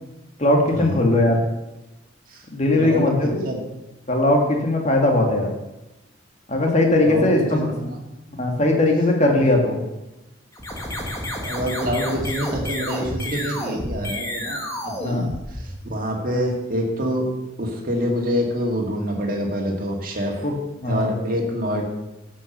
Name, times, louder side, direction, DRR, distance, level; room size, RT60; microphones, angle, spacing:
voice 1, 0.4-1.4 2.5-3.4 4.1-5.5 6.5-7.7 8.4-9.8 15.0-15.3 20.4-20.5 20.8-21.1, left 1 dB, 35° left, 1 dB, 1.9 m, -19 dB
voice 2, 2.8-3.6 7.0-8.0 9.4-9.5 11.4-17.3 17.6-20.5 20.9-21.8, equal, 45° right, 0 dB, 2.2 m, -26 dB
sound 1, 10.5-16.0, left 1 dB, 15° left, 1.6 m, -30 dB
11.0 x 6.2 x 6.7 m, 0.98 s
head